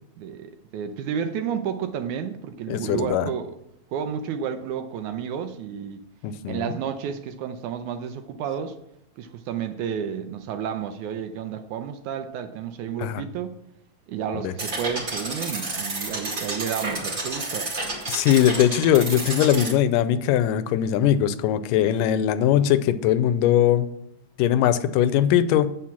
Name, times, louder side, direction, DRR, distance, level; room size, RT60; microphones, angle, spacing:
voice 1, 0.0-3.6 3.9-6.1 6.5-8.8 9.2-13.6 14.1-17.7, right 8 dB, 80° right, 2.0 m, -31 dB
voice 2, 2.7-3.3 6.2-6.8 13.0-13.2 14.4-14.5 18.1-23.9 24.4-25.8, left 10 dB, 80° left, 2.2 m, -20 dB
sound 1, 14.6-19.7, right 2 dB, 30° right, 2.0 m, -30 dB
8.7 x 7.6 x 5.8 m
omnidirectional pair, 3.8 m